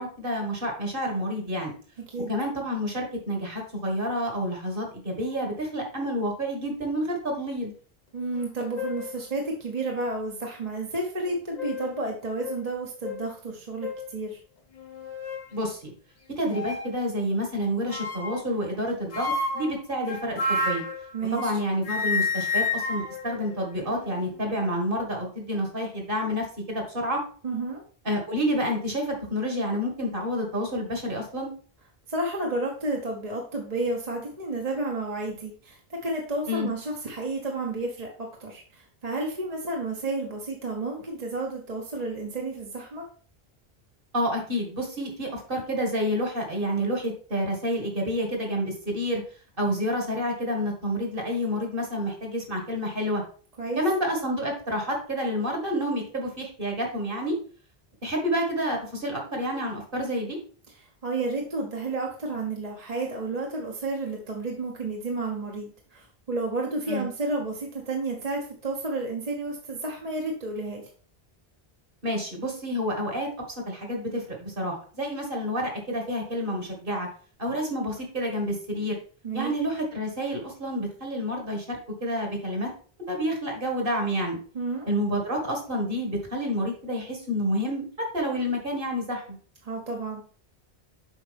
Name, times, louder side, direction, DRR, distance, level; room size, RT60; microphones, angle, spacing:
voice 1, 0.0-1.7 2.3-7.7 15.5-15.9 16.3-20.8 21.3-27.2 28.1-31.5 36.5-36.7 44.1-49.2 49.6-53.2 53.8-57.4 58.0-60.4 66.9-67.1 72.0-73.3 73.7-77.1 77.4-79.0 79.3-82.7 83.1-84.4 84.9-89.4, equal, 55° right, 1 dB, 2.1 m, -29 dB
voice 2, 8.1-14.4 21.1-21.5 27.4-27.8 32.1-43.1 53.6-53.8 61.0-70.9 79.2-79.5 84.5-84.9 89.6-90.2, right 2 dB, 40° right, 0 dB, 1.1 m, -31 dB
sound 1, 8.3-8.4 8.8-9.2 9.9-10.0 11.3-12.0 12.4-12.6 13.0-13.2 13.8-14.1 14.8-15.5 16.5-16.9 17.9-18.5 19.1-21.6 21.8-24.2, left 3 dB, 45° left, 1.1 m, -31 dB
7.4 x 5.1 x 3.4 m, 0.42 s
omnidirectional pair, 1.0 m